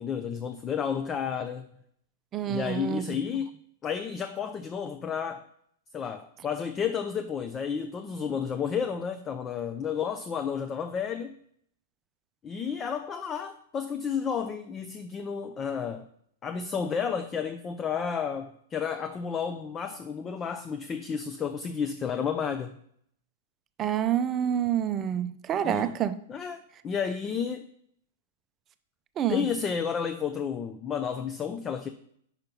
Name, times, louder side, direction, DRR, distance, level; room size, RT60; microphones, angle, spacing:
voice 1, 0.0-1.7 2.5-3.5 3.8-5.5 5.9-11.4 12.4-16.1 16.4-22.8 25.6-26.0 26.3-27.6 29.3-31.9, left 7 dB, 25° left, 0.5 m, -31 dB
voice 2, 2.3-3.1 23.8-26.2 29.2-29.5, right 9 dB, 30° right, 0.5 m, -27 dB
5.7 x 4.4 x 5.3 m
hypercardioid pair, 110°, 0 cm